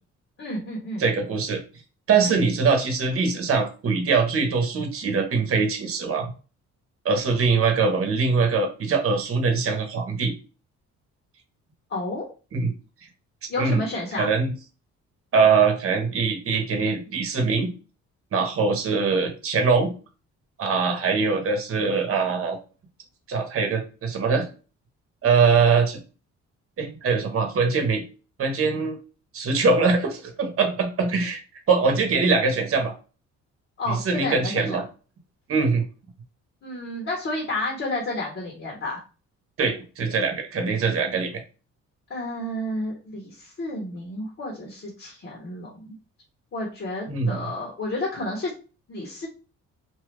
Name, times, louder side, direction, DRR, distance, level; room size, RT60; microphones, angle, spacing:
voice 1, 0.4-1.0 2.2-2.3 11.9-12.3 13.5-14.3 33.8-34.8 36.6-39.0 42.1-45.9 46.5-48.5 48.9-49.3, left 1 dB, 45° left, -3 dB, 1.2 m, -31 dB
voice 2, 1.0-1.6 2.1-6.3 7.0-10.3 12.5-12.7 13.6-13.8 14.2-14.5 15.3-17.7 18.3-19.9 20.6-22.6 23.3-24.4 25.2-26.0 26.8-28.0 28.4-29.0 29.3-31.4 31.7-32.9 33.9-34.8 35.5-35.8 39.6-41.4 47.1-47.4, right 4 dB, 45° right, 4 dB, 1.0 m, -22 dB
2.7 x 2.4 x 3.3 m, 0.34 s
cardioid pair, 90°, 30 cm